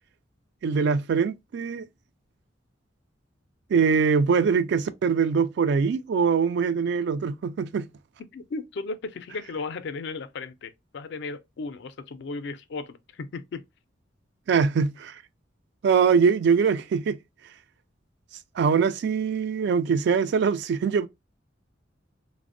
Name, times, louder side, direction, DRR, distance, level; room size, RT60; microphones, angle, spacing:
voice 1, 0.6-1.9 3.7-7.9 14.5-15.2 15.8-17.2 18.6-21.1, right 6 dB, 65° right, 0.3 m, -23 dB
voice 2, 8.3-13.7, left 3 dB, 65° left, 0.4 m, -35 dB
3.4 x 2.0 x 2.5 m
head